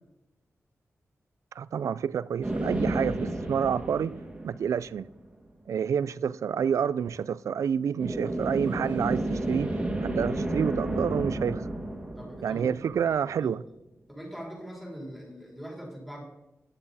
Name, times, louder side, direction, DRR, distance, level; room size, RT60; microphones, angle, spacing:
voice 1, 1.6-4.2 4.4-5.1 5.7-9.7 10.0-11.7 12.4-13.6, right 7 dB, 85° right, 0.4 m, -28 dB
sound 1, 2.4-5.2 8.0-13.4, right 1 dB, 20° right, 2.1 m, -32 dB
voice 2, 12.2-12.7 13.4-13.5 14.1-16.2, equal, ahead, 3.9 m, -41 dB
14.5 x 10.0 x 4.2 m
wide cardioid pair, 150°, 5 cm